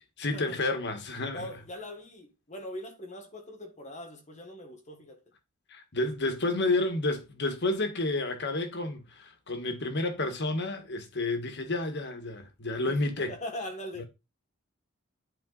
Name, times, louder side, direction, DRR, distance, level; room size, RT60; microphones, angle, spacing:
voice 1, 0.2-1.5 5.7-13.3 14.0-14.1, left 2 dB, 55° left, 1.7 m, -30 dB
voice 2, 1.3-5.2 12.8-13.0 13.3-14.0, left 1 dB, 35° left, 1.7 m, -41 dB
11.0 x 4.4 x 4.0 m
head